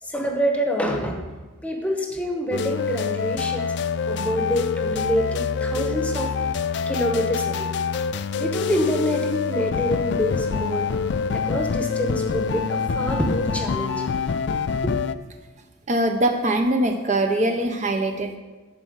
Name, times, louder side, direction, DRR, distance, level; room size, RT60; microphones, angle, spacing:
voice 1, 0.0-1.2 1.6-3.8 4.0-6.3 6.9-7.7 8.4-10.9 11.3-14.1 14.8-15.0, equal, 5° left, 2 dB, 0.9 m, -26 dB
sound 1, 2.5-15.1, left 5 dB, 55° left, 0.4 m, -26 dB
voice 2, 15.9-18.4, right 1 dB, 35° right, 4 dB, 0.6 m, -22 dB
11.5 x 4.4 x 8.0 m, 1.3 s
head